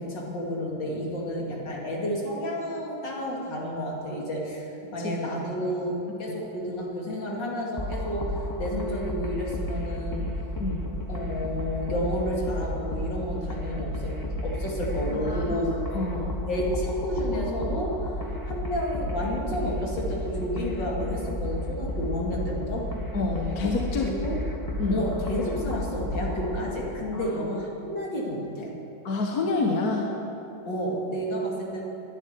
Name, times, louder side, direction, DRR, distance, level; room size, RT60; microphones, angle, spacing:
voice 1, 0.0-10.3 11.1-15.8 16.4-18.1 18.5-22.9 24.0-24.5 24.9-28.7 30.7-31.8, equal, 70° left, -3 dB, 3.1 m, -31 dB
sound 1, 7.8-26.6, left 1 dB, 15° left, 0.8 m, -32 dB
voice 2, 15.2-15.6 15.9-16.4 23.1-24.1 24.8-25.1 27.1-27.3 29.0-30.2, left 3 dB, 55° left, 0 dB, 1.6 m, -28 dB
11.5 x 10.5 x 9.6 m, 3.0 s
omnidirectional pair, 2.1 m